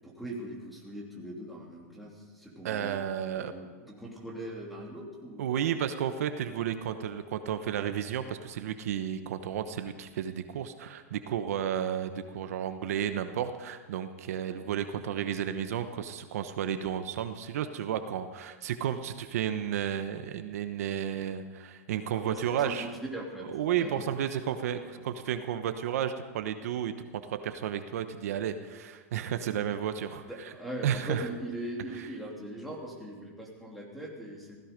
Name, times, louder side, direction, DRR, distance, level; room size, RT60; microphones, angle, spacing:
voice 1, 0.0-3.0 3.3-5.5 14.5-14.7 22.3-23.5 23.8-24.1 26.6-26.7 30.2-34.6, right 1 dB, ahead, -4 dB, 2.9 m, -40 dB
voice 2, 2.6-3.5 5.4-22.9 23.5-30.5 30.8-31.3 31.9-32.1, right 9 dB, 70° right, 9 dB, 1.1 m, -32 dB
16.0 x 15.5 x 5.3 m, 1.4 s
supercardioid pair, 160°, 8 cm